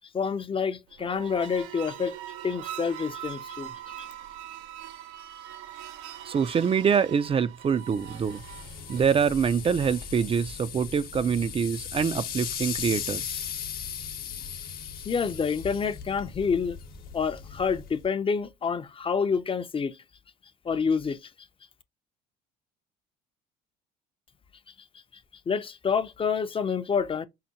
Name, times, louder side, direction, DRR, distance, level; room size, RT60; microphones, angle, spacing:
voice 1, 0.1-2.1 2.4-3.7 15.0-16.8 17.1-20.0 20.6-21.3 25.5-27.2, left 6 dB, 25° left, 0.5 m, -28 dB
sound 1, 0.9-10.3, right 11 dB, 75° right, 0.6 m, -42 dB
voice 2, 6.3-8.4 8.9-13.4, right 7 dB, 30° right, 0.4 m, -25 dB
sound 2, 7.8-18.1, left 7 dB, 50° left, 0.9 m, -38 dB
5.6 x 2.1 x 2.8 m
supercardioid pair, 80°, 20 cm